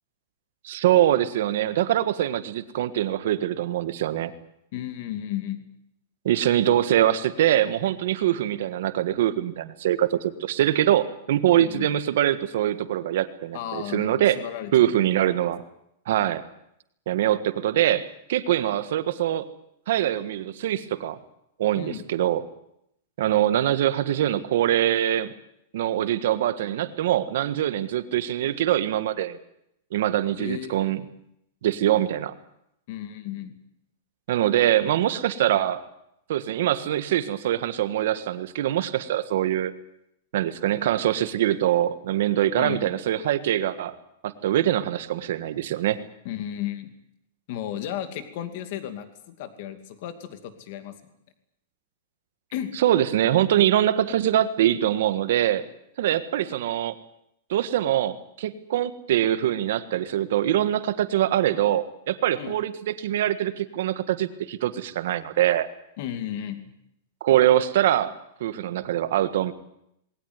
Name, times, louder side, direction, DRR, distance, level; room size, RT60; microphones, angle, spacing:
voice 1, 0.6-4.3 6.2-14.4 14.7-15.6 16.1-16.4 17.1-19.5 19.9-21.2 21.6-22.4 23.2-25.3 25.7-29.4 29.9-31.0 31.6-32.3 34.3-35.8 36.3-39.7 40.3-43.9 44.2-46.0 52.8-55.6 56.0-56.9 57.5-65.7 67.2-68.1 68.4-69.5, right 12 dB, 60° right, 12 dB, 1.5 m, -23 dB
voice 2, 4.7-5.6 11.6-11.9 13.5-15.1 21.8-22.0 30.4-30.9 32.9-33.5 42.6-42.9 46.2-46.9 47.5-50.9 52.5-52.7 62.4-62.5 66.0-66.6, left 11 dB, 45° left, 9 dB, 2.5 m, -34 dB
20.0 x 18.5 x 9.6 m, 0.78 s
supercardioid pair, 170°, 0 cm